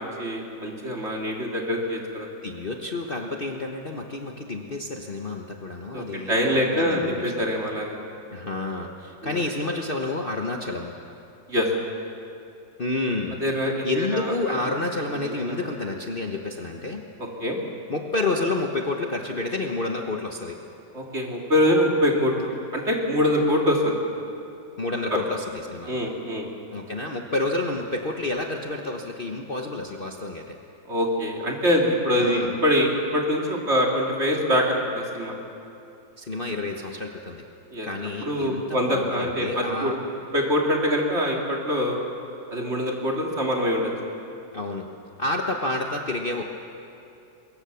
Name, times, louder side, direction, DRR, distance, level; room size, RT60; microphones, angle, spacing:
voice 1, 0.0-2.3 5.9-8.0 9.2-9.4 11.5-11.7 13.4-14.3 15.2-15.6 17.4-17.6 20.9-23.9 25.1-25.2 25.9-26.5 30.9-35.3 37.7-37.9 38.2-39.9 40.3-42.0 42.5-43.9, equal, 35° right, -1 dB, 3.3 m, -24 dB
voice 2, 2.4-7.1 8.3-10.9 12.8-13.4 13.8-17.0 17.9-20.6 24.8-25.4 25.7-26.0 26.7-30.6 32.2-32.6 36.2-37.4 37.8-40.0 44.5-44.9 45.2-46.4, left 2 dB, 35° left, 1 dB, 1.2 m, -29 dB
23.5 x 22.5 x 7.1 m, 2.7 s
omnidirectional pair, 1.9 m